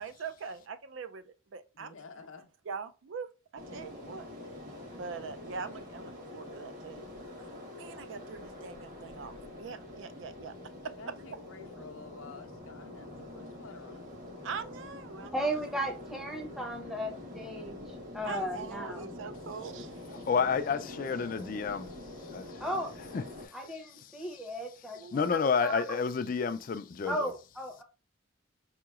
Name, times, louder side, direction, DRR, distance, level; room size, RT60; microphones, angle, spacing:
voice 1, 0.0-1.9 2.7-4.3 5.0-7.0 7.3-7.5 7.7-10.5 10.8-11.1 14.4-15.5 18.2-20.2 24.9-25.3, right 5 dB, 65° right, 0.4 m, -42 dB
voice 2, 1.7-2.5 11.0-14.0, left 4 dB, 80° left, 0.6 m, -50 dB
sound 1, 3.6-23.5, left 1 dB, 40° right, 1.1 m, -45 dB
voice 3, 15.3-19.1 22.6-22.9 23.5-25.2 25.6-25.8 27.1-27.8, equal, ahead, 0.6 m, -35 dB
voice 4, 20.1-22.7 23.1-27.3, left 5 dB, 40° left, 0.3 m, -32 dB
4.7 x 2.9 x 2.3 m
head